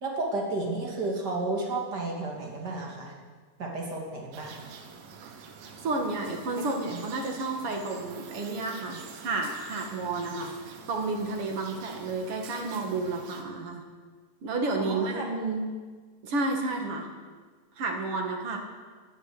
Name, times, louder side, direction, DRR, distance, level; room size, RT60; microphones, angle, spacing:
voice 1, 0.0-3.1 3.6-4.6 6.9-7.0 14.8-15.2 16.8-16.9, right 2 dB, 30° right, -1 dB, 3.0 m, -32 dB
sound 1, 4.3-13.4, right 6 dB, 75° right, 3.0 m, -46 dB
voice 2, 5.8-10.5 10.9-13.8 14.4-15.7 16.2-17.1 17.8-18.6, right 3 dB, 45° right, 3 dB, 2.5 m, -31 dB
15.5 x 9.1 x 9.6 m, 1.5 s
omnidirectional pair, 3.9 m